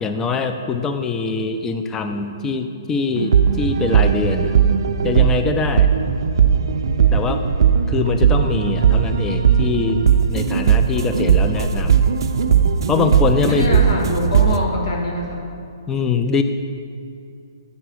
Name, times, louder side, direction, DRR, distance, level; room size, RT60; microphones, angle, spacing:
voice 1, 0.0-4.6 5.0-5.9 7.1-7.4 7.9-10.0 10.3-12.0 12.9-13.8 15.9-16.4, left 5 dB, 15° left, 7 dB, 0.4 m, -23 dB
sound 1, 3.1-14.6, right 7 dB, 70° right, 0.4 m, -17 dB
voice 2, 13.5-15.5, left 1 dB, 80° left, -1 dB, 1.7 m, -24 dB
8.4 x 4.1 x 6.2 m, 2.4 s
hypercardioid pair, 140°, 2 cm